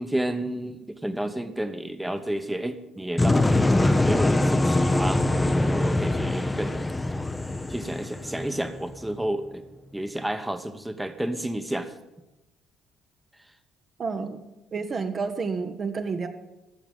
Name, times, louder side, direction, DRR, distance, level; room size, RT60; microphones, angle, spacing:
voice 1, 0.0-3.8 4.0-5.2 5.5-6.8 7.7-9.7 9.9-11.9, right 1 dB, 10° right, 9 dB, 1.0 m, -31 dB
sound 1, 3.2-9.0, left 2 dB, 15° left, 0.8 m, -23 dB
voice 2, 14.0-14.4 14.7-16.3, right 4 dB, 40° right, 6 dB, 1.0 m, -30 dB
14.0 x 7.3 x 7.3 m, 0.98 s
figure-of-eight pair, 50°, 0 cm